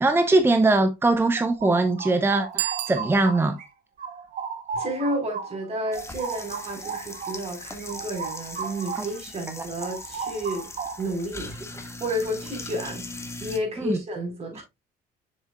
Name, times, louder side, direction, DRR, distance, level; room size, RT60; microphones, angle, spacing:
voice 1, 0.0-3.6 9.0-9.1 9.6-9.7 13.8-14.0, right 2 dB, 15° right, 0.8 m, -21 dB
sound 1, 1.1-3.7 4.0-9.2 9.5-11.2, right 5 dB, 55° right, 1.7 m, -36 dB
Bicycle bell, 2.5-3.7, right 15 dB, 90° right, 0.6 m, -32 dB
voice 2, 4.7-10.7 11.0-11.5 12.0-14.6, equal, 40° right, 4.2 m, -31 dB
sound 2, 5.9-13.6, left 2 dB, 15° left, 1.4 m, -40 dB
7.4 x 6.4 x 2.3 m
cardioid pair, 110°, 17 cm